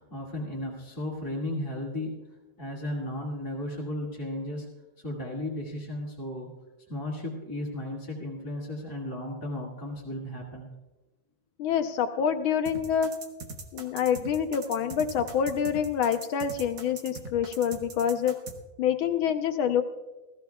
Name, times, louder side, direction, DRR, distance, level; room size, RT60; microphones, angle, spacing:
voice 1, 0.0-2.2 2.6-4.7 5.0-6.5 6.9-10.7, left 1 dB, 10° left, -5 dB, 1.8 m, -35 dB
voice 2, 11.6-13.1 13.7-18.3 18.8-19.8, left 8 dB, 80° left, 7 dB, 1.6 m, -26 dB
sound 1, 12.7-18.6, right 4 dB, 65° right, 1.9 m, -41 dB
20.0 x 14.0 x 2.3 m, 1.1 s
omnidirectional pair, 2.3 m